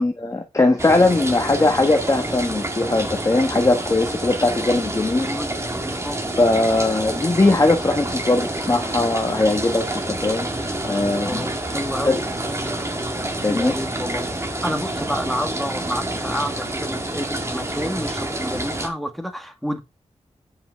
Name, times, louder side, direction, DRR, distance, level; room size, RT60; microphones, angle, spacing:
voice 1, 0.0-5.3 6.4-11.5 12.1-12.2 13.4-13.8, left 2 dB, 30° left, 1.3 m, -20 dB
sound 1, 0.8-18.9, right 1 dB, 25° right, 2.0 m, -28 dB
voice 2, 5.2-6.2 11.2-12.2 13.5-14.3 14.6-19.8, equal, ahead, 1.8 m, -29 dB
8.1 x 5.5 x 4.6 m
wide cardioid pair, 70°, 12 cm